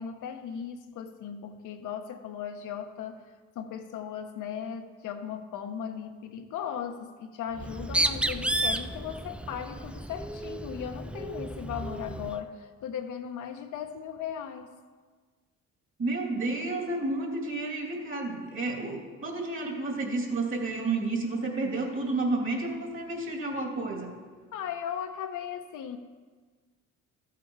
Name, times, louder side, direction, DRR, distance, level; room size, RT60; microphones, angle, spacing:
voice 1, 0.0-3.2 3.5-14.7 24.5-26.0, left 8 dB, 80° left, 5 dB, 1.1 m, -37 dB
Bird, 7.5-12.4, right 1 dB, 5° right, 0.3 m, -32 dB
voice 2, 16.0-24.1, right 2 dB, 45° right, 1 dB, 2.9 m, -31 dB
13.5 x 8.5 x 4.8 m, 1.4 s
cardioid pair, 90°, 30 cm